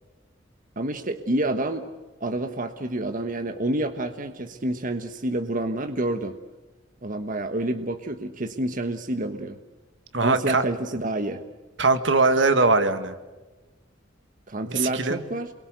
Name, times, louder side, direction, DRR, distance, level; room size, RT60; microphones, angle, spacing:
voice 1, 0.8-1.9 2.2-6.4 7.0-9.6 10.2-11.4 14.5-15.5, right 1 dB, 45° right, 7 dB, 1.3 m, -28 dB
voice 2, 10.1-10.6 11.8-13.1 14.7-15.2, right 3 dB, 70° right, 9 dB, 2.0 m, -21 dB
29.0 x 23.0 x 8.1 m, 1.2 s
head